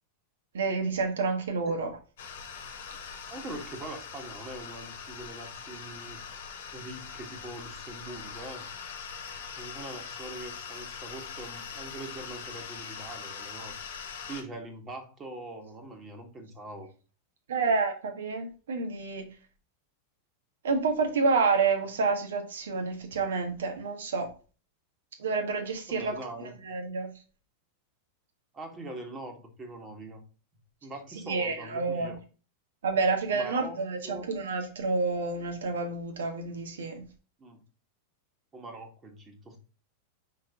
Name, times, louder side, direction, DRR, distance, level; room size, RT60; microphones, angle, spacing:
voice 1, 0.5-1.9 17.5-19.3 20.6-24.3 25.2-26.2 26.6-27.1 31.2-32.1 32.8-37.0, right 4 dB, 65° right, 5 dB, 1.6 m, -29 dB
sound 1, 2.2-14.4, left 6 dB, 55° left, 1.3 m, -42 dB
voice 2, 3.3-6.2 6.7-8.7 9.3-14.0 14.3-16.9 25.9-26.6 28.5-30.2 30.8-32.2 33.3-33.8 34.0-34.2 37.4-37.6 38.5-39.6, right 2 dB, 20° right, 4 dB, 1.8 m, -43 dB
5.7 x 4.7 x 3.7 m, 0.35 s
figure-of-eight pair, 90°, 0 cm